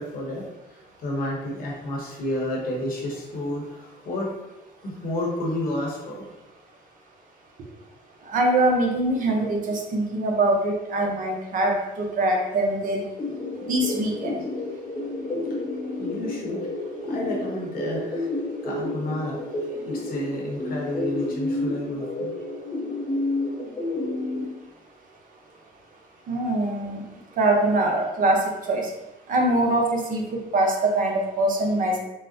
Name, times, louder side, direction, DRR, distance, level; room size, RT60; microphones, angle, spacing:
voice 1, 0.0-4.3 4.8-6.2 13.3-13.4 16.0-16.7 17.0-18.3 18.6-19.4 19.8-22.3, left 1 dB, 60° left, -2 dB, 0.9 m, -31 dB
voice 2, 8.3-13.0 13.7-14.4 26.3-27.0 27.4-28.4 28.7-28.9 29.3-32.0, right 2 dB, 50° right, 1 dB, 0.7 m, -23 dB
sound 1, 13.2-24.5, left 2 dB, 15° left, 0.5 m, -30 dB
3.8 x 2.1 x 2.5 m, 0.98 s
cardioid pair, 110°, 17 cm